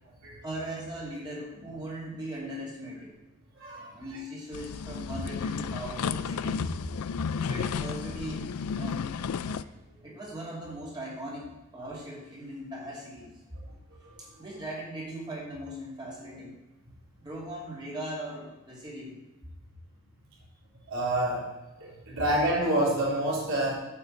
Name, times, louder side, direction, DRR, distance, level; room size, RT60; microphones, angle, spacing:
voice 1, 0.4-3.1 3.9-6.7 7.2-9.1 9.4-9.6 10.0-13.3 14.4-16.6 17.2-19.1, right 1 dB, 20° right, -4 dB, 2.5 m, -39 dB
voice 2, 3.6-4.0 11.8-11.9 14.0-14.1 20.9-21.5 21.9-23.7, right 1 dB, 60° right, -5 dB, 3.6 m, -27 dB
sound 1, 4.5-9.6, left 6 dB, 75° left, 0.4 m, -33 dB
9.4 x 5.3 x 7.7 m, 1.1 s
head